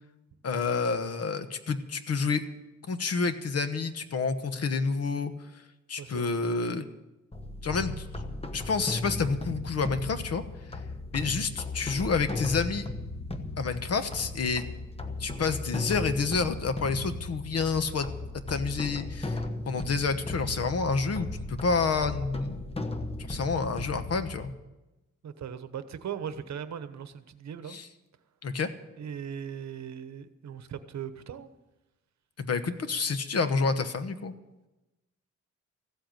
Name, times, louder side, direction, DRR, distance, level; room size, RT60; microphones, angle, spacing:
voice 1, 0.4-2.4 2.9-5.3 5.9-6.8 7.6-8.1 8.5-10.4 10.7-10.8 11.1-12.9 13.6-14.6 15.2-18.1 18.5-22.6 23.2-24.5 27.7-27.9 28.4-28.7 32.4-34.3, left 4 dB, 50° left, 10 dB, 1.2 m, -29 dB
voice 2, 6.0-6.5 25.2-27.8 29.0-31.5, right 8 dB, 60° right, 11 dB, 1.1 m, -39 dB
sound 1, 7.3-24.5, left 2 dB, 20° left, 1.1 m, -36 dB
15.0 x 7.9 x 8.9 m, 1.0 s
cardioid pair, 105°, 31 cm